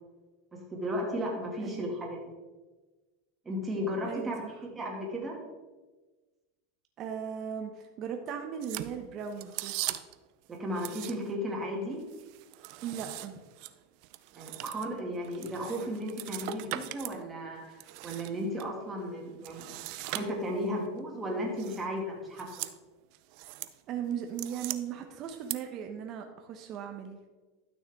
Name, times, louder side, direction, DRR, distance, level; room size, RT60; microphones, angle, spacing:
voice 1, 0.5-2.3 3.5-5.4 10.5-12.1 14.3-22.5, equal, 15° right, -1 dB, 2.2 m, -35 dB
voice 2, 1.6-1.9 4.0-4.5 7.0-9.7 12.8-13.4 23.9-27.3, right 8 dB, 40° right, 4 dB, 0.8 m, -38 dB
sound 1, 8.6-10.3 10.7-11.5 11.8-17.2 17.5-18.7 19.4-20.7 21.6-21.9 22.3-22.8 23.1-23.7 24.1-24.8 25.3-25.5, right 17 dB, 55° right, 0.4 m, -40 dB
12.0 x 6.3 x 3.6 m, 1.2 s
supercardioid pair, 135°, 0 cm